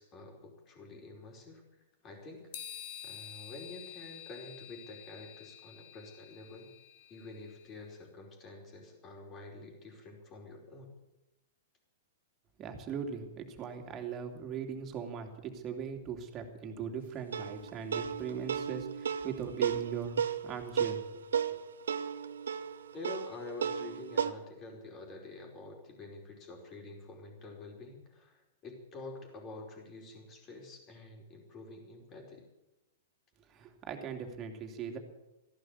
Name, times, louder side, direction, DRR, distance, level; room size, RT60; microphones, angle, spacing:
voice 1, 0.0-2.5 3.0-6.7 7.1-10.9 22.9-32.4, left 2 dB, 30° left, 2 dB, 4.9 m, -48 dB
sound 1, 2.5-7.8, left 11 dB, 50° left, 2.0 m, -49 dB
voice 2, 12.6-21.2 21.5-21.6 33.5-35.0, right 7 dB, 30° right, 4 dB, 2.8 m, -40 dB
sound 2, 17.3-24.3, right 7 dB, 80° right, 0.9 m, -34 dB
15.0 x 11.5 x 8.3 m, 0.97 s
hypercardioid pair, 115°, 0 cm